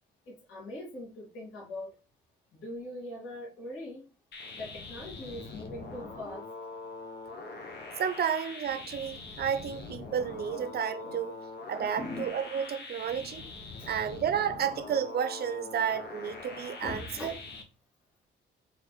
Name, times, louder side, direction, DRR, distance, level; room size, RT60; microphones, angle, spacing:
voice 1, 0.3-1.9 2.5-4.0 4.5-6.5 11.0-11.2 11.8-12.3 13.8-13.9 16.8-17.4, left 1 dB, 85° left, 2.2 m, -41 dB
sound 1, 4.3-17.6, left 3 dB, 60° left, 1.1 m, -43 dB
voice 2, 8.0-11.3 11.7-13.4 13.9-17.3, right 8 dB, 55° right, 0.7 m, -31 dB
4.2 x 3.8 x 3.2 m
cardioid pair, 90°, 20 cm